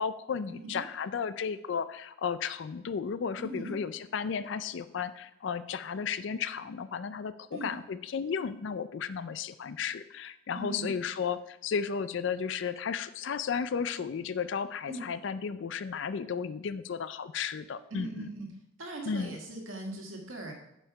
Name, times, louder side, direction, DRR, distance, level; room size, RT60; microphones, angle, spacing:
voice 1, 0.0-18.3 19.0-19.4, left 6 dB, 65° left, 13 dB, 0.4 m, -34 dB
voice 2, 3.4-3.7 7.5-7.7 10.5-10.9 14.9-15.1 17.9-18.5 18.8-20.5, right 2 dB, 80° right, 1 dB, 1.7 m, -39 dB
7.3 x 5.4 x 4.8 m, 0.83 s
head